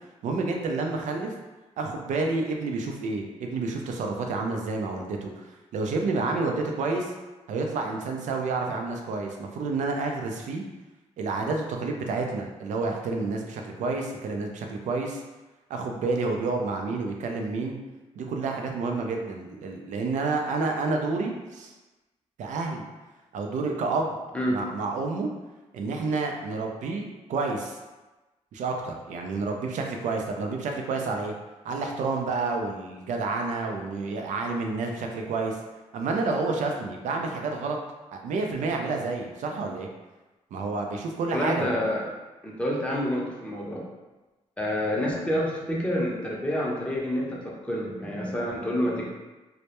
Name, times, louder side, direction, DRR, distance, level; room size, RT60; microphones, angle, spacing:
voice 1, 0.2-1.3 1.8-7.1 7.5-10.6 11.2-15.2 15.7-17.8 18.2-21.7 22.4-22.8 23.3-24.2 24.5-25.3 25.7-27.8 28.5-31.3 31.6-35.6 35.9-37.8 38.1-39.9 40.5-41.8, right 3 dB, 80° right, 2 dB, 0.4 m, -29 dB
voice 2, 41.3-42.0 42.4-43.9 44.6-49.1, equal, 10° left, -4 dB, 0.6 m, -28 dB
2.2 x 2.1 x 2.8 m, 1.1 s
cardioid pair, 100°, 12 cm